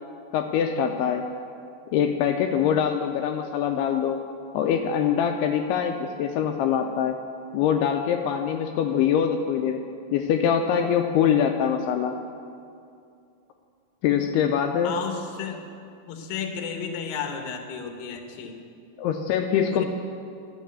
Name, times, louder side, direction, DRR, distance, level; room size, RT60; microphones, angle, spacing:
voice 1, 0.3-1.3 1.9-4.2 4.5-7.2 7.5-9.9 10.1-12.2 14.0-15.0 19.0-19.9, left 8 dB, 85° left, 4 dB, 2.3 m, -24 dB
voice 2, 14.8-15.7 16.1-18.6 19.6-19.9, left 6 dB, 70° left, 4 dB, 2.3 m, -33 dB
11.5 x 6.9 x 8.4 m, 2.4 s
omnidirectional pair, 5.1 m